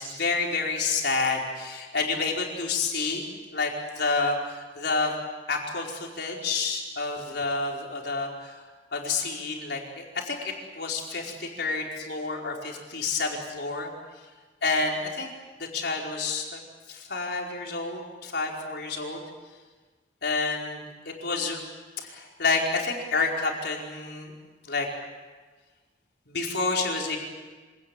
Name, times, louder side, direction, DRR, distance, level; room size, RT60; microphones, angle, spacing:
voice 1, 0.0-3.3 3.5-3.7 4.0-5.1 5.5-8.6 8.9-13.9 14.6-15.3 15.6-16.6 16.9-19.2 20.2-21.6 22.0-24.3 24.6-24.9 26.3-27.2, left 4 dB, 60° left, 0 dB, 4.9 m, -29 dB
26.0 x 18.0 x 9.8 m, 1.3 s
head